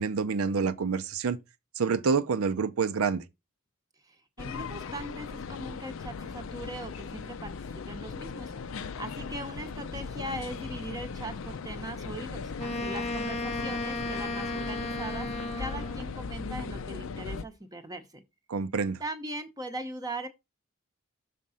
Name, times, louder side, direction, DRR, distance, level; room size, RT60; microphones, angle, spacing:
voice 1, 0.0-1.4 1.8-3.2 18.5-19.0, right 5 dB, 80° right, 0.5 m, -27 dB
voice 2, 4.1-18.2 19.0-20.3, right 1 dB, 15° right, 0.7 m, -40 dB
sound 1, 4.4-17.4, left 5 dB, 65° left, 0.5 m, -38 dB
Wind instrument woodwind instrument, 12.6-16.1, left 2 dB, 30° left, 0.8 m, -34 dB
6.4 x 3.6 x 5.5 m
head